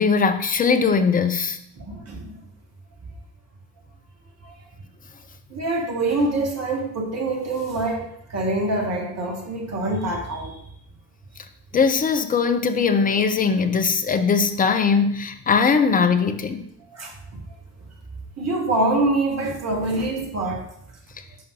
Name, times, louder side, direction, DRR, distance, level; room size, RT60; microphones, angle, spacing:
voice 1, 0.0-1.6 11.7-16.6, left 5 dB, 20° left, 8 dB, 0.6 m, -20 dB
voice 2, 1.8-2.4 4.4-4.5 5.5-10.6 16.9-17.1 18.4-20.6, right 2 dB, 35° right, 1 dB, 1.5 m, -25 dB
5.2 x 4.9 x 4.6 m, 0.73 s
figure-of-eight pair, 45°, 46 cm